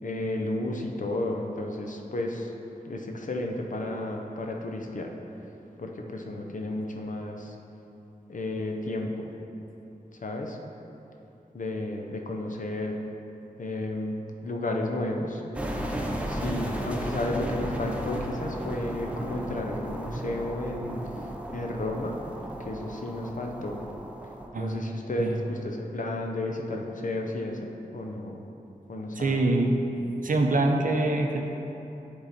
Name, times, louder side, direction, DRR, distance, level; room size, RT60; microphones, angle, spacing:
voice 1, 0.0-2.5 2.8-5.1 5.8-7.5 8.3-9.3 10.2-10.6 11.5-13.0 13.6-14.1 14.4-15.4 16.3-21.0 21.5-22.1 22.6-23.8 24.6-28.5 28.9-29.6, left 1 dB, 60° left, 2 dB, 0.7 m, -32 dB
sound 1, 15.5-24.5, right 1 dB, 10° right, 0.6 m, -34 dB
voice 2, 24.5-25.4 29.2-29.8 30.2-31.4, right 2 dB, 65° right, 3 dB, 0.6 m, -25 dB
9.9 x 3.7 x 4.2 m, 2.9 s
wide cardioid pair, 80°, 15 cm